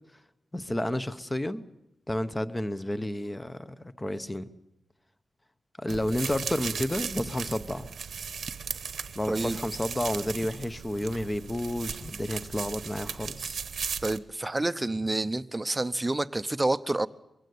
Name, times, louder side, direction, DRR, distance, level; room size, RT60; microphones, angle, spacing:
voice 1, 0.5-1.6 2.1-4.5 5.8-7.9 9.1-13.6, left 1 dB, 15° left, 0.9 m, -31 dB
sound 1, 5.9-14.2, right 6 dB, 90° right, 1.1 m, -37 dB
voice 2, 9.3-9.6 14.0-17.1, right 2 dB, 20° right, 0.7 m, -28 dB
22.5 x 16.0 x 9.5 m
wide cardioid pair, 135°, 0 cm